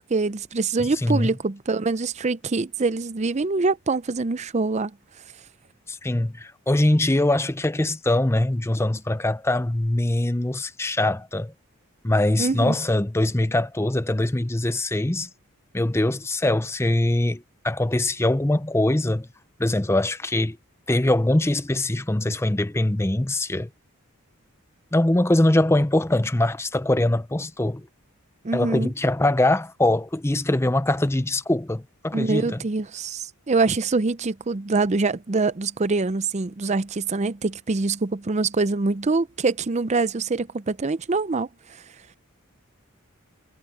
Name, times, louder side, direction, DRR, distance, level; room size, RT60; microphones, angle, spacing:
voice 1, 0.1-4.9 12.4-12.7 28.4-28.9 32.1-41.5, right 3 dB, 30° right, 0.5 m, -24 dB
voice 2, 5.9-11.5 12.0-15.3 15.7-19.3 19.6-20.6 20.9-23.7 24.9-27.9 28.5-32.6, left 1 dB, 10° left, 0.6 m, -22 dB
head